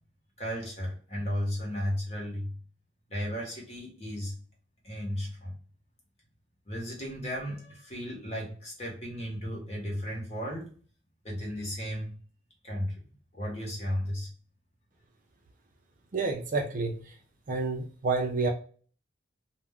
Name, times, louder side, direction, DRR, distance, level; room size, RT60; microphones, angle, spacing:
voice 1, 0.4-2.5 3.1-4.3 4.8-5.5 6.7-10.7 11.2-12.1 12.6-13.0 13.3-14.3, equal, 35° left, 1.0 m, -34 dB
voice 2, 16.1-17.2 17.5-18.5, right 3 dB, 45° right, 0.4 m, -29 dB
2.4 x 2.1 x 3.5 m
head